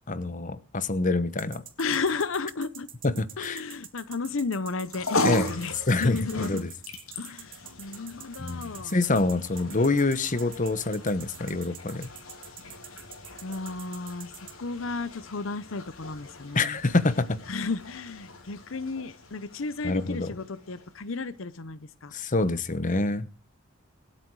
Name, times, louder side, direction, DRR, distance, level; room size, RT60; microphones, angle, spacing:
voice 1, 0.1-1.6 3.0-3.6 5.2-5.5 5.9-6.7 8.4-12.1 16.5-17.4 19.8-20.3 22.1-23.3, left 2 dB, 40° left, 1.0 m, -26 dB
sound 1, 1.4-14.5, right 10 dB, 45° right, 2.6 m, -45 dB
voice 2, 1.8-2.9 3.4-6.7 7.2-9.0 13.4-16.8 17.5-22.1, left 4 dB, 70° left, 0.8 m, -33 dB
sound 2, 4.7-21.2, left 1 dB, 85° left, 3.3 m, -38 dB
26.0 x 8.7 x 4.8 m
head